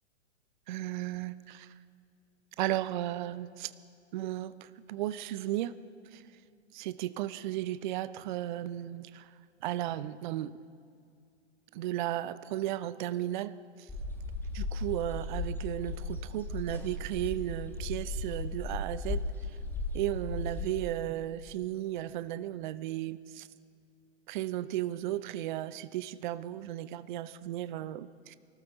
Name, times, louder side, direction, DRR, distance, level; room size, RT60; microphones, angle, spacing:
voice 1, 0.7-1.7 2.6-3.7 4.1-5.8 6.1-6.2 6.7-9.3 9.6-10.5 11.7-13.5 14.5-19.2 19.9-23.5 24.3-28.3, right 13 dB, 40° right, 15 dB, 0.5 m, -35 dB
sound 1, 13.9-20.8, left 2 dB, 5° left, 1.4 m, -36 dB
23.5 x 14.0 x 4.0 m, 2.3 s
hypercardioid pair, 115°, 36 cm